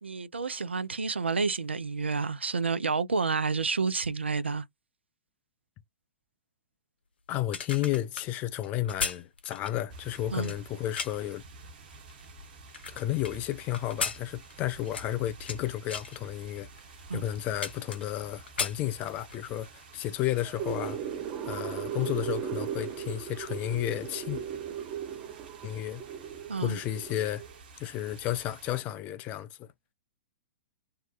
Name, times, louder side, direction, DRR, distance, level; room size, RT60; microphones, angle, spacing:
voice 1, 0.0-4.6 10.3-10.5 17.1-17.3 26.5-26.8, right 4 dB, 80° right, 0.4 m, -29 dB
sound 1, 7.3-11.3 11.9-13.3 13.7-15.6 15.9-16.2 16.8-16.9 17.2-18.2 18.5-19.5 19.8-20.0, left 5 dB, 65° left, 0.7 m, -36 dB
voice 2, 7.3-11.4 12.9-16.7 17.1-21.0 21.4-24.4 25.6-26.0 26.6-27.4 27.8-29.7, left 13 dB, 25° left, 0.3 m, -32 dB
sound 2, 9.9-28.8, right 4 dB, 50° right, 1.0 m, -51 dB
sound 3, 20.3-27.6, right 8 dB, 30° right, 0.7 m, -37 dB
2.7 x 2.1 x 2.3 m
figure-of-eight pair, 110°, 6 cm